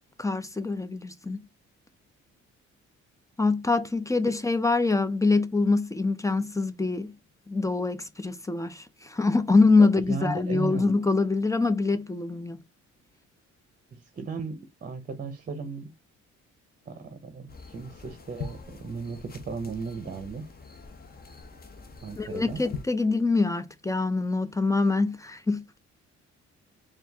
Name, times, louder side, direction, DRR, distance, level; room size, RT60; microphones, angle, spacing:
voice 1, 0.2-1.4 3.4-7.1 7.5-12.6 22.2-25.8, left 3 dB, 10° left, 0.4 m, -24 dB
voice 2, 10.1-10.9 13.9-15.9 16.9-20.5 22.0-22.6, right 4 dB, 30° right, 0.7 m, -36 dB
sound 1, 17.5-22.9, left 5 dB, 30° left, 0.8 m, -43 dB
4.4 x 2.4 x 3.4 m
cardioid pair, 90°, 30 cm